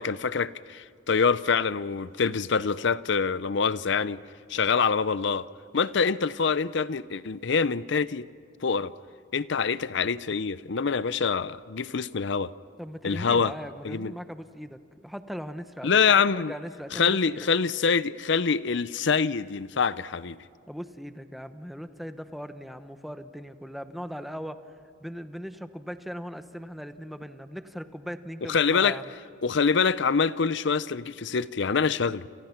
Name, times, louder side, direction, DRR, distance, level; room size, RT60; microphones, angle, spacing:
voice 1, 0.0-4.2 4.5-5.5 5.7-8.3 8.6-8.9 9.3-12.5 13.0-13.5 13.8-14.1 15.8-16.5 16.9-20.4 28.5-29.0 29.4-32.3, left 5 dB, 65° left, 16 dB, 0.7 m, -25 dB
voice 2, 12.8-16.0 16.3-17.4 20.7-24.6 25.0-29.0, equal, ahead, 9 dB, 1.0 m, -39 dB
29.5 x 28.5 x 5.9 m, 2.2 s
head